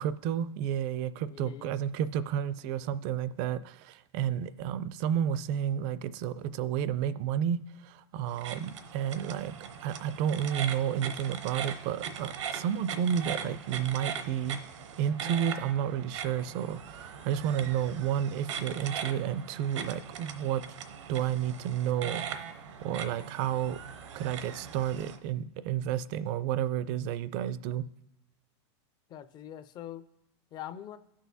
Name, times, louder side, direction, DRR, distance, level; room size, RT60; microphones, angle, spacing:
voice 1, 0.0-9.6 9.8-14.6 15.0-20.6 21.1-22.2 22.8-23.8 24.1-27.8, right 9 dB, 45° right, 16 dB, 0.4 m, -31 dB
voice 2, 1.2-1.7 17.5-17.7 29.1-30.0 30.5-31.0, left 11 dB, 30° left, 12 dB, 0.5 m, -43 dB
sound 1, 8.3-25.2, right 7 dB, 85° right, 0.8 m, -40 dB
18.0 x 6.2 x 2.7 m, 0.86 s
supercardioid pair, 135°, 15 cm